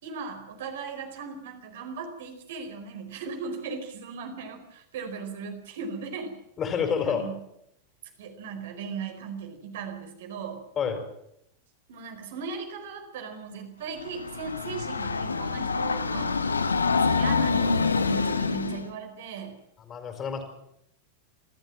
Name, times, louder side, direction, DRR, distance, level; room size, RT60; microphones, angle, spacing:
voice 1, 0.0-6.4 7.1-7.4 8.2-10.6 11.9-16.6 17.1-19.6, right 5 dB, 55° right, 5 dB, 4.6 m, -38 dB
voice 2, 6.6-7.2 10.8-11.0 19.8-20.4, left 7 dB, 25° left, 6 dB, 5.0 m, -28 dB
Train, 14.0-18.9, left 4 dB, 75° left, 1.3 m, -26 dB
28.5 x 13.5 x 7.7 m, 0.80 s
figure-of-eight pair, 90°, 0 cm